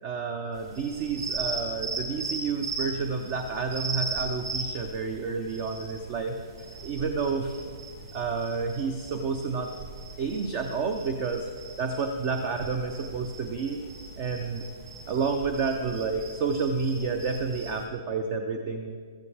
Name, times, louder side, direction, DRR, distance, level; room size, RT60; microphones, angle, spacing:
voice 1, 0.0-6.4 6.8-7.6 8.1-9.7 10.2-11.5 11.8-13.8 14.2-14.6 15.1-19.0, right 4 dB, 25° right, 6 dB, 0.6 m, -30 dB
sound 1, 0.6-17.9, right 3 dB, 50° right, 2.5 m, -38 dB
15.5 x 14.0 x 3.4 m, 2.1 s
hypercardioid pair, 170°, 3 cm